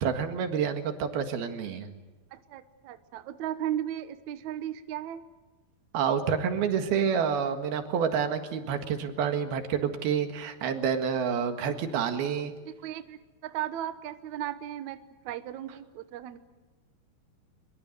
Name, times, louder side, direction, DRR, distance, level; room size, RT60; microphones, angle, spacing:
voice 1, 0.0-2.0 5.9-12.5, right 7 dB, 85° right, 7 dB, 3.7 m, -28 dB
voice 2, 2.3-5.2 12.3-16.4, right 11 dB, 65° right, 11 dB, 2.1 m, -36 dB
24.0 x 22.5 x 7.9 m, 1.2 s
omnidirectional pair, 4.4 m